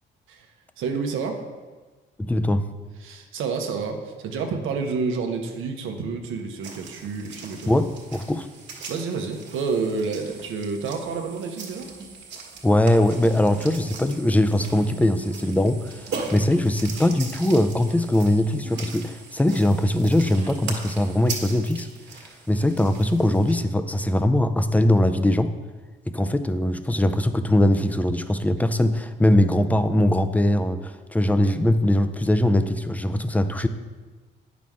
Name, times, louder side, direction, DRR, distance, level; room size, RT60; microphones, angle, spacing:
voice 1, 0.8-1.4 3.0-7.7 8.9-11.9 16.1-16.3, right 4 dB, 85° right, 4 dB, 0.9 m, -29 dB
voice 2, 2.2-2.6 7.7-8.5 12.6-21.9 22.5-25.5 26.1-33.7, left 1 dB, 5° left, 10 dB, 0.4 m, -21 dB
sound 1, 6.6-23.5, right 4 dB, 65° right, 1.5 m, -40 dB
sound 2, 8.5-8.7 9.2-9.5 10.1-10.5 10.8-17.4 17.7-19.1 19.4-20.6, right 3 dB, 35° right, 0.9 m, -48 dB
9.1 x 6.0 x 3.6 m, 1.3 s
cardioid pair, 90°, 20 cm